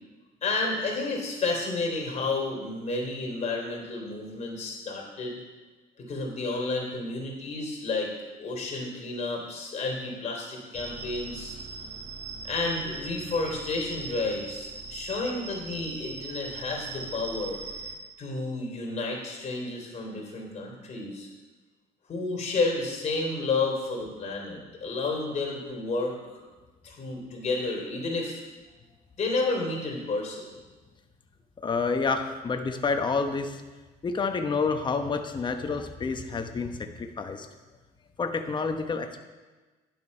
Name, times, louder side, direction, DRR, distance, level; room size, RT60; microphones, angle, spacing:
voice 1, 0.4-5.4 6.0-8.1 8.4-11.6 12.4-17.6 18.2-21.3 22.1-26.4 26.8-28.4 29.2-30.5, left 3 dB, 45° left, 0 dB, 3.5 m, -31 dB
sound 1, 10.7-18.0, right 4 dB, 35° right, 1.4 m, -40 dB
voice 2, 31.6-33.6 34.0-37.5 38.2-39.2, left 4 dB, 25° left, 5 dB, 1.0 m, -29 dB
11.0 x 7.7 x 5.4 m, 1.3 s
cardioid pair, 110°, 17 cm